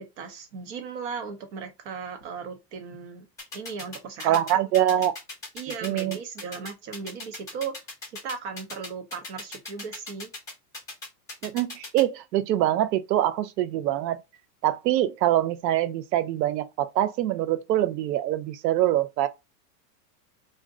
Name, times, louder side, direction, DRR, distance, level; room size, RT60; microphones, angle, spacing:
voice 1, 0.0-3.3 3.5-4.6 5.0-5.1 5.5-7.7 8.1-10.3, right 5 dB, 45° right, 0.7 m, -37 dB
sound 1, 3.4-12.0, left 2 dB, 5° left, 0.7 m, -38 dB
voice 2, 4.2-5.1 5.7-6.2 11.4-14.2 14.6-19.3, right 13 dB, 85° right, 0.6 m, -24 dB
2.6 x 2.1 x 3.5 m
supercardioid pair, 175°, 49 cm